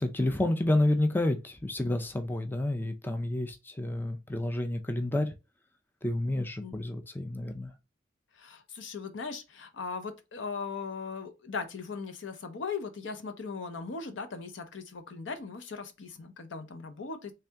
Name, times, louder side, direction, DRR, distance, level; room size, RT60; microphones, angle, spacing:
voice 1, 0.0-5.3 6.0-7.7, left 1 dB, 10° left, 0.4 m, -29 dB
voice 2, 8.4-17.3, left 5 dB, 70° left, 0.7 m, -38 dB
3.3 x 2.7 x 3.4 m
head